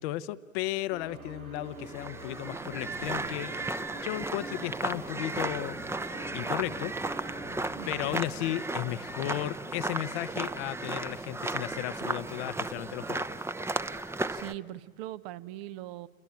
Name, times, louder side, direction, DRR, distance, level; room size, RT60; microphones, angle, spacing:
voice 1, 0.0-3.6 4.0-6.9 7.9-13.4, left 15 dB, 50° left, 15 dB, 1.0 m, -35 dB
sound 1, 0.9-8.3, right 2 dB, 80° right, 2.4 m, -46 dB
sound 2, 1.8-14.5, right 2 dB, 5° right, 0.9 m, -35 dB
voice 2, 7.7-8.1 14.3-16.1, right 14 dB, 45° right, 15 dB, 1.1 m, -41 dB
29.5 x 23.0 x 8.8 m, 1.5 s
figure-of-eight pair, 75°, 42 cm